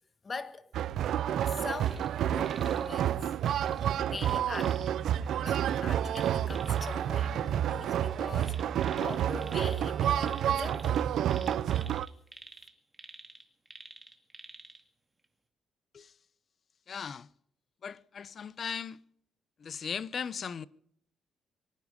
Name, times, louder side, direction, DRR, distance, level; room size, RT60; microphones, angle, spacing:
voice 1, 0.2-0.7 1.4-3.3 4.0-4.8 5.4-11.1, left 4 dB, 35° left, 1.4 m, -42 dB
sound 1, 0.7-12.1, right 10 dB, 75° right, 0.6 m, -29 dB
sound 2, 1.4-2.1 2.4-2.9 3.5-4.9 6.1-7.0 8.4-9.9 10.2-14.8 15.2-15.3, right 2 dB, 15° right, 2.2 m, -50 dB
Bowed string instrument, 4.6-11.4, right 4 dB, 40° right, 1.6 m, -53 dB
voice 2, 16.9-17.3 17.8-19.0 19.6-20.7, left 6 dB, 50° left, 0.7 m, -38 dB
24.5 x 9.7 x 5.3 m
cardioid pair, 90°, 0 cm